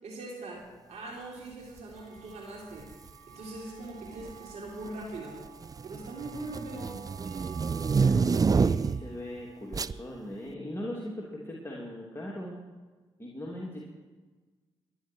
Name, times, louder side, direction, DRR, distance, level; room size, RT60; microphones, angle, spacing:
voice 1, 0.0-2.9 3.3-5.4 5.8-7.0, right 2 dB, 65° right, -3 dB, 3.5 m, -41 dB
sound 1, 1.7-10.3, right 9 dB, 90° right, 2.2 m, -52 dB
sound 2, 2.8-3.1 4.1-4.5 4.9-9.1 9.7-10.0, right 5 dB, 30° right, 0.4 m, -28 dB
voice 2, 7.9-12.6 13.2-13.8, left 1 dB, 20° left, -4 dB, 3.0 m, -39 dB
22.5 x 10.5 x 4.6 m, 1.3 s
hypercardioid pair, 40°, 12 cm